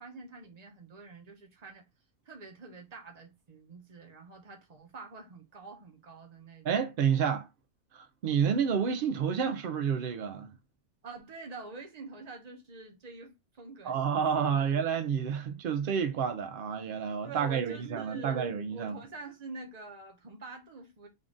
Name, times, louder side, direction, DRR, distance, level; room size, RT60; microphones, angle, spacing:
voice 1, 0.0-1.9 2.3-6.8 11.0-14.7 17.2-18.5 18.7-21.1, right 3 dB, 35° right, 0.8 m, -47 dB
voice 2, 6.6-7.5 7.9-10.5 13.8-19.0, right 7 dB, 85° right, 0.4 m, -29 dB
3.7 x 2.5 x 3.7 m
omnidirectional pair, 1.5 m